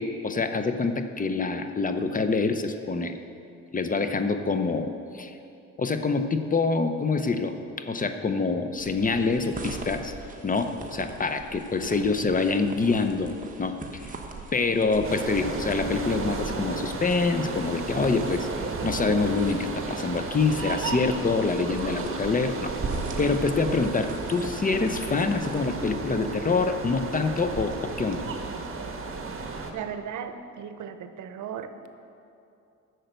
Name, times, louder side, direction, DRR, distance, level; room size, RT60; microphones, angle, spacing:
voice 1, 0.0-3.2 3.7-5.3 5.8-10.1 10.4-13.3 13.6-14.1 14.5-18.5 18.8-22.7 23.2-28.2, left 4 dB, 25° left, 8 dB, 0.7 m, -26 dB
sound 1, 8.8-25.6, right 3 dB, 25° right, 1.3 m, -40 dB
sound 2, 15.0-29.7, right 4 dB, 45° right, 1.4 m, -34 dB
voice 2, 29.7-31.7, right 8 dB, 75° right, 9 dB, 0.8 m, -36 dB
10.0 x 6.6 x 8.0 m, 2.6 s
cardioid pair, 90°, 30 cm